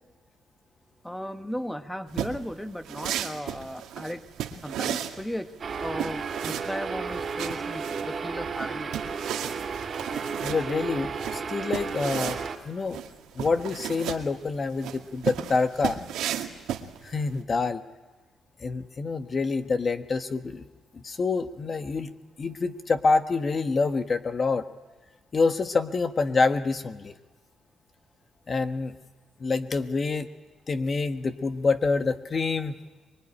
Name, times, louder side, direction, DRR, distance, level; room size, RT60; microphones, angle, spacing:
voice 1, 1.0-4.2 4.6-5.5 5.8-8.9, equal, 5° left, 8 dB, 1.3 m, -35 dB
sound 1, 2.1-17.4, right 10 dB, 90° right, 2.1 m, -35 dB
sound 2, 5.6-12.6, right 5 dB, 45° right, 2.6 m, -33 dB
voice 2, 10.4-12.4 12.6-13.0 13.3-16.0 17.0-17.8 18.6-20.6 20.9-22.1 22.4-24.6 25.3-27.1 28.5-28.9 29.4-30.3 30.7-32.7, left 4 dB, 40° left, 8 dB, 1.3 m, -26 dB
24.0 x 22.5 x 10.0 m, 1.2 s
cardioid pair, 90°, 0 cm